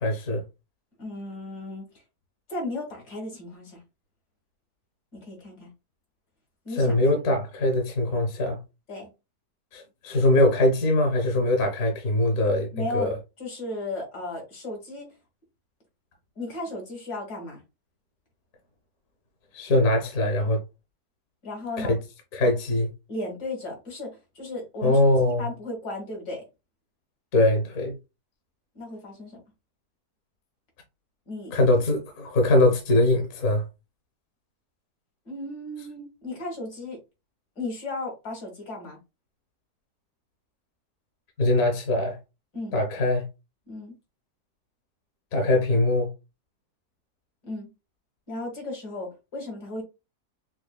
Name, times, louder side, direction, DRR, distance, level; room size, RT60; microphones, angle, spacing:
voice 1, 0.0-0.4 6.8-8.6 9.7-13.1 19.5-20.6 21.8-22.0 22.3-22.9 24.8-25.4 27.3-27.9 31.5-33.6 41.4-42.2 42.7-43.2 45.3-46.1, left 1 dB, 60° left, 1.2 m, -22 dB
voice 2, 1.0-1.8 2.5-3.8 5.1-5.7 6.6-7.0 8.9-9.1 12.7-13.1 13.4-15.1 16.4-17.6 21.4-22.0 23.1-26.4 28.7-29.4 31.3-31.5 35.3-37.0 37.6-39.0 42.5-42.8 43.7-43.9 47.4-47.7 48.3-49.8, left 2 dB, 75° left, 2.2 m, -35 dB
6.2 x 2.2 x 2.2 m
omnidirectional pair, 1.7 m